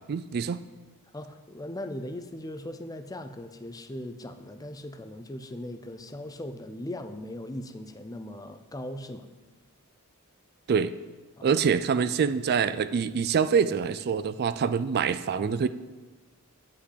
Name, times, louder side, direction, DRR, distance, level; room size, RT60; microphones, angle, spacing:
voice 1, 0.1-0.6 10.7-10.9 11.4-15.7, right 6 dB, 45° right, 13 dB, 0.3 m, -25 dB
voice 2, 1.1-9.3 11.4-11.6, left 1 dB, 15° left, 9 dB, 0.6 m, -39 dB
10.0 x 5.4 x 8.4 m, 1.3 s
head